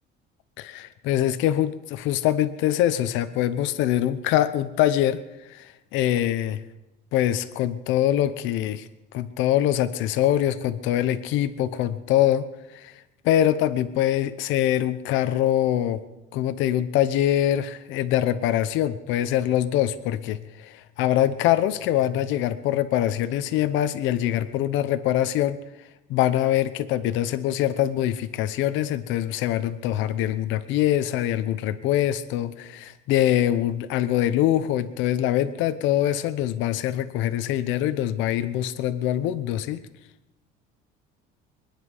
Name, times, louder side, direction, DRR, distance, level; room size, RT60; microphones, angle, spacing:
voice 1, 0.6-5.2 5.5-6.6 7.1-8.9 9.1-12.4 12.7-12.9 13.2-16.0 16.3-25.6 26.1-39.8, left 12 dB, 65° left, 11 dB, 0.9 m, -24 dB
23.5 x 10.5 x 5.5 m, 0.99 s
cardioid pair, 160°, 21 cm